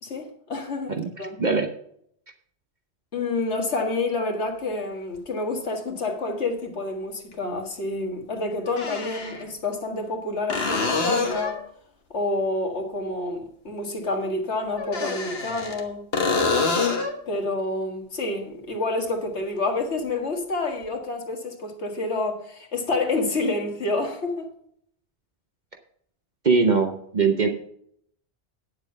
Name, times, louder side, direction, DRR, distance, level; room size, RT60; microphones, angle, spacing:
voice 1, 0.0-1.4 3.1-11.6 12.1-16.0 17.3-24.5, left 2 dB, 85° left, 2.1 m, -28 dB
voice 2, 1.0-1.7 26.4-27.5, right 4 dB, 45° right, 1.0 m, -21 dB
sound 1, 5.2-5.3 7.3-7.4 8.7-9.4 10.5-11.6 14.8-15.8 16.1-17.2 20.8-20.9, left 4 dB, 65° left, 1.7 m, -26 dB
9.6 x 7.4 x 5.5 m
omnidirectional pair, 1.1 m